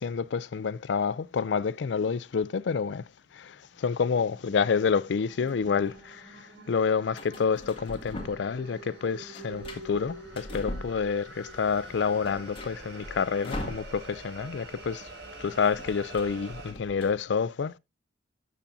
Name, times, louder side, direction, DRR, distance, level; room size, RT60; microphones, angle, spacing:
voice 1, 0.0-3.1 3.3-15.1 15.4-17.8, left 5 dB, 70° left, 0.4 m, -28 dB
sound 1, 3.5-16.7, right 2 dB, 80° right, 5.3 m, -47 dB
sound 2, 5.2-6.0 7.1-8.6 8.9-11.4 11.8-11.9 12.1-14.3 14.6-14.8 15.0-17.1, left 1 dB, 30° left, 1.9 m, -41 dB
Aircraft, 11.4-17.2, equal, 10° right, 6.8 m, -55 dB
14.0 x 7.3 x 2.7 m
head